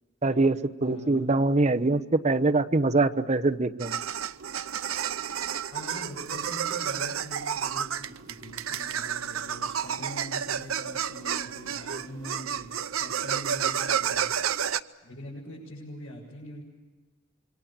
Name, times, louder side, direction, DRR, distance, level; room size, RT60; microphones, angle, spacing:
voice 1, 0.2-4.0, right 2 dB, 35° right, 7 dB, 0.9 m, -24 dB
voice 2, 0.8-1.3 5.7-12.7 13.0-14.3 15.0-16.6, equal, 85° left, -5 dB, 7.3 m, -43 dB
sound 1, 3.8-14.8, right 8 dB, 80° right, 0.7 m, -31 dB
27.0 x 24.0 x 7.4 m, 1.3 s
head